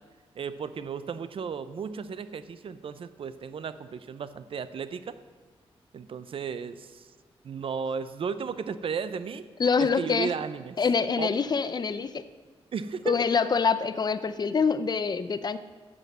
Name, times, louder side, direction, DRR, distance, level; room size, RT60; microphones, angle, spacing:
voice 1, 0.3-5.1 5.9-7.1 7.4-9.4 9.8-10.8 11.2-11.3 12.7-13.2, right 6 dB, 60° right, 13 dB, 0.6 m, -34 dB
voice 2, 9.6-10.3 10.8-12.2 13.1-15.6, left 5 dB, 45° left, 13 dB, 0.6 m, -25 dB
11.0 x 8.1 x 7.4 m, 1.5 s
cardioid pair, 100°, 10 cm